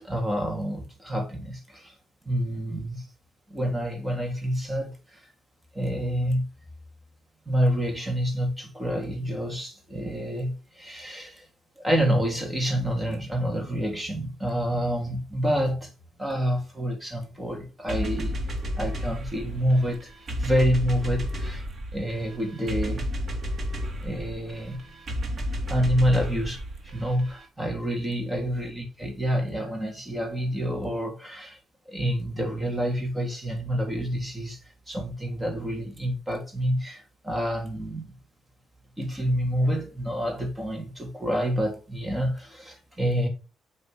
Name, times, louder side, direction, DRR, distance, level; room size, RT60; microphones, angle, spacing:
voice 1, 0.0-2.0 2.2-3.1 3.5-5.3 5.7-6.4 7.4-11.5 11.8-15.9 16.2-20.1 20.4-21.6 21.9-23.0 24.0-24.8 25.7-31.6 31.9-34.6 34.9-38.1 39.0-43.3, equal, 15° right, 3.1 m, -28 dB
sound 1, 17.9-27.4, equal, 45° right, 3.0 m, -32 dB
7.9 x 4.3 x 4.9 m
cardioid pair, 95°, 0 cm